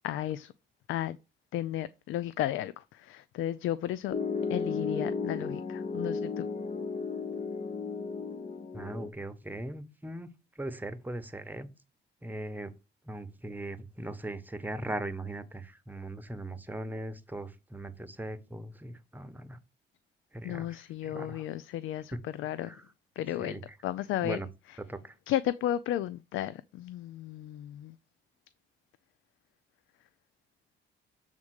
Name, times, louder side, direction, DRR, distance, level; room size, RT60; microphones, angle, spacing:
voice 1, 0.0-0.5 0.9-1.2 1.5-4.1 4.5-6.5 20.4-22.8 23.2-23.5 23.8-24.4 25.3-28.0, left 12 dB, 80° left, 0.4 m, -33 dB
Piano, 4.1-9.1, left 4 dB, 35° left, 0.8 m, -34 dB
voice 2, 8.7-10.3 10.5-11.7 12.2-12.7 13.0-19.6 20.3-21.4 22.1-22.2 22.6-22.8 23.4-23.8 24.2-24.5 24.9-25.1, right 1 dB, 10° right, 1.0 m, -39 dB
7.2 x 3.6 x 6.4 m
cardioid pair, 90°, 20 cm